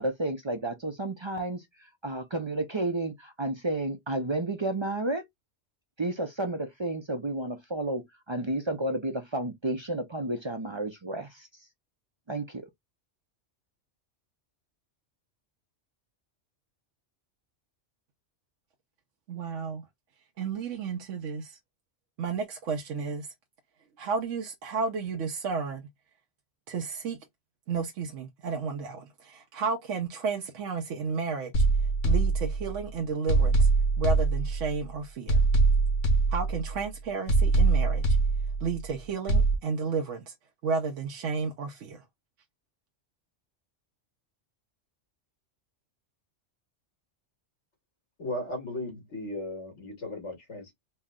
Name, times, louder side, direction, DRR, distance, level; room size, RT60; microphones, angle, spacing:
voice 1, 0.0-1.6 2.0-5.2 6.0-11.5 12.3-12.7, right 2 dB, 40° right, 0.4 m, -31 dB
voice 2, 19.3-19.8 20.4-21.6 22.2-23.3 24.0-25.8 26.7-27.2 27.7-31.5 32.0-33.7 34.0-35.4 36.3-38.2 38.6-40.3 40.6-42.0, right 5 dB, 90° right, 1.1 m, -32 dB
sound 1, 31.5-32.8 33.3-34.8 35.3-36.8 37.3-38.8 39.3-39.6, right 3 dB, 85° left, 1.3 m, -23 dB
voice 3, 48.2-50.7, left 1 dB, 70° left, 2.2 m, -36 dB
4.3 x 2.1 x 3.6 m
omnidirectional pair, 1.2 m